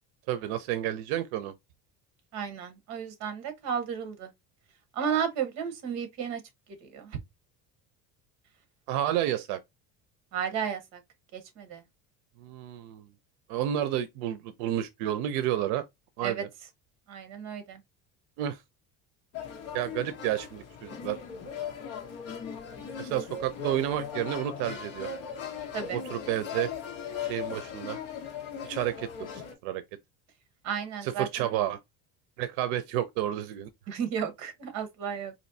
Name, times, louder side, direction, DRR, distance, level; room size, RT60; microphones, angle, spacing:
voice 1, 0.3-1.5 8.9-9.6 12.4-13.1 13.5-15.8 16.2-16.5 18.4-18.6 19.7-21.2 23.0-25.1 25.9-26.7 27.2-28.0 28.6-29.1 29.6-29.8 31.0-31.8 32.4-33.7, right 12 dB, 85° right, 0.6 m, -30 dB
voice 2, 2.3-4.3 4.9-6.4 6.8-7.2 10.3-11.0 11.3-11.8 16.2-16.4 17.1-17.8 25.7-26.0 30.6-31.6 33.9-35.3, right 7 dB, 50° right, 1.2 m, -33 dB
sound 1, 19.3-29.5, left 7 dB, 40° left, 1.0 m, -38 dB
4.2 x 2.6 x 2.6 m
cardioid pair, 180°, 36 cm